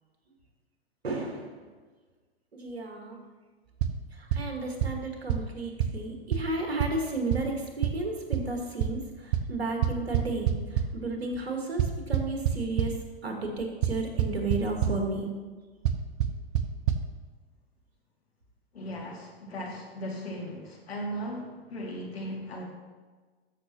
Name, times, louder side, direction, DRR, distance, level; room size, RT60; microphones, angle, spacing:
voice 1, 1.0-1.6 2.5-3.2 4.1-12.9 13.2-15.3, right 3 dB, 80° right, 2 dB, 1.8 m, -33 dB
sound 1, 3.8-3.9 4.3-4.4 4.8-4.9 5.3-5.4 5.8-5.9 6.3-6.4 6.8-6.9 7.3-7.4 7.8-7.9 8.3-8.4 8.8-8.9 9.3-9.4 9.8-10.8 11.8-12.9 13.8-13.9 14.2-14.6 14.8-14.9 15.9-16.0 16.2-16.3 16.6-16.7 16.9-17.0, right 13 dB, 55° right, 0.8 m, -24 dB
voice 2, 18.7-22.6, equal, 80° left, -1 dB, 2.3 m, -37 dB
14.0 x 6.2 x 2.9 m, 1.4 s
figure-of-eight pair, 100°, 31 cm